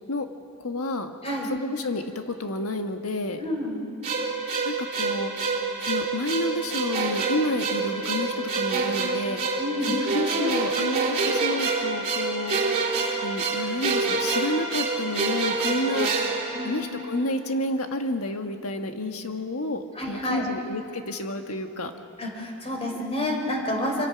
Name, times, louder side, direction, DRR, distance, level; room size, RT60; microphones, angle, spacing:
voice 1, 0.6-1.1 1.5-3.4 4.6-5.3 5.8-9.6 9.9-12.6 13.2-16.1 16.6-21.9, left 1 dB, 75° left, 6 dB, 1.6 m, -30 dB
voice 2, 3.4-3.8 9.6-10.0 16.5-17.0 20.0-20.5 22.2-24.1, left 1 dB, 30° left, 1 dB, 3.6 m, -29 dB
sound 1, 4.0-17.3, right 4 dB, 35° right, 3.3 m, -27 dB
25.5 x 25.5 x 6.0 m, 2.9 s
head